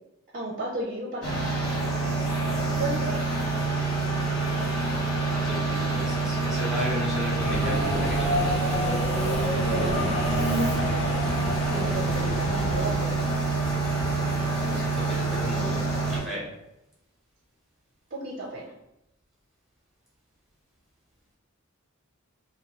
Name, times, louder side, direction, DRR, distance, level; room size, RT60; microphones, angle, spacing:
voice 1, 0.3-1.5 2.7-3.3 9.6-10.4 11.7-13.2 18.1-18.6, right 2 dB, 40° right, -2 dB, 0.5 m, -33 dB
sound 1, 1.2-16.2, right 3 dB, 75° left, 1.2 m, -27 dB
voice 2, 5.3-8.4 14.6-16.4, equal, ahead, -6 dB, 1.0 m, -34 dB
Subway metro underground, 7.4-13.6, left 1 dB, 30° left, 0.5 m, -29 dB
2.9 x 2.5 x 2.9 m, 0.88 s
head